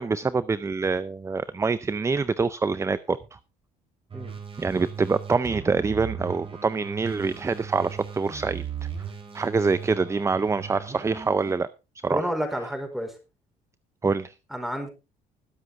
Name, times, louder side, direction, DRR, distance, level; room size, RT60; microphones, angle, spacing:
voice 1, 0.0-3.2 4.6-8.6 9.3-11.7 12.0-12.2 14.0-14.3, right 4 dB, 15° right, 16 dB, 0.5 m, -25 dB
sound 1, 4.1-11.5, right 7 dB, 30° right, 3.9 m, -38 dB
voice 2, 12.1-13.2 14.5-14.9, equal, ahead, 5 dB, 4.5 m, -30 dB
20.5 x 7.8 x 3.5 m, 0.29 s
cardioid pair, 110°, 17 cm